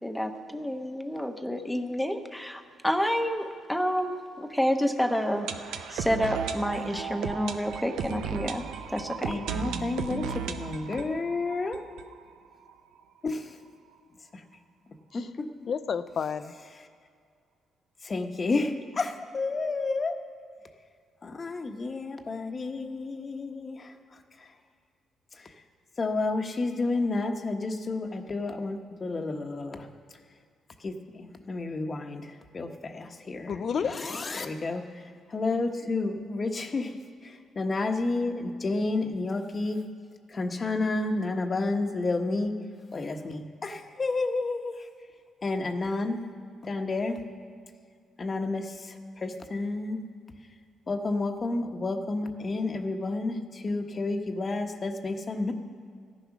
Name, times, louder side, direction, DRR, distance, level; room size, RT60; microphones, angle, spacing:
voice 1, 0.0-5.5 5.9-8.6 8.9-9.4, equal, 5° left, 6 dB, 1.1 m, -29 dB
sound 1, 5.0-12.7 13.0-13.1 13.3-13.4 13.9-14.0, right 7 dB, 85° right, 0.7 m, -36 dB
voice 2, 9.3-11.8 13.2-13.5 14.3-14.4 15.1-15.5 18.0-20.2 21.2-23.9 25.4-25.5 26.0-29.9 30.8-33.5 33.8-34.9 35.3-36.9 37.2-39.8 40.3-42.5 42.9-44.7 45.4-46.2 46.6-47.2 48.2-50.0 50.9-55.5, left 3 dB, 35° left, 6 dB, 1.2 m, -30 dB
voice 3, 15.7-16.5 33.5-33.9, left 6 dB, 55° left, 12 dB, 0.6 m, -30 dB
15.0 x 10.5 x 6.1 m, 2.2 s
cardioid pair, 90°, 0 cm